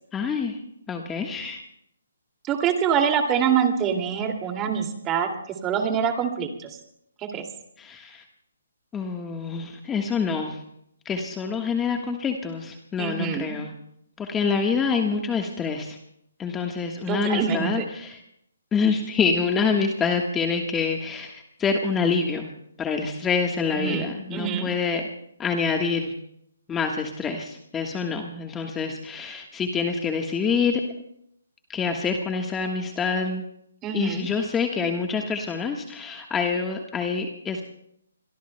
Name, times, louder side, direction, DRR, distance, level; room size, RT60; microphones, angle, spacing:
voice 1, 0.1-0.6 0.9-1.6 7.8-8.2 8.9-10.6 11.0-13.7 14.2-16.0 16.4-18.2 18.7-22.5 22.8-25.0 25.4-26.1 26.7-30.8 31.7-33.4 33.9-37.6, left 5 dB, 15° left, 3 dB, 1.4 m, -26 dB
voice 2, 2.4-5.3 5.6-6.8 7.3-7.5 13.0-13.6 17.1-17.8 23.7-24.7 33.8-34.3, right 7 dB, 20° right, 4 dB, 2.4 m, -25 dB
26.5 x 22.5 x 2.2 m, 0.75 s
hypercardioid pair, 145°, 0 cm